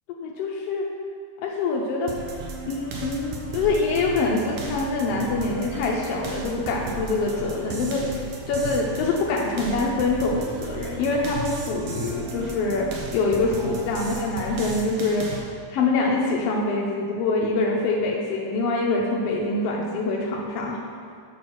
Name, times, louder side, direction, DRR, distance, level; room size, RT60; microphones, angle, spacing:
voice 1, 0.2-0.9 1.4-2.1 2.6-8.1 8.5-15.4 15.7-20.8, left 3 dB, 80° left, -2 dB, 1.4 m, -25 dB
sound 1, 2.1-15.4, right 3 dB, 75° right, 1.3 m, -35 dB
6.0 x 4.4 x 6.3 m, 2.3 s
omnidirectional pair, 3.5 m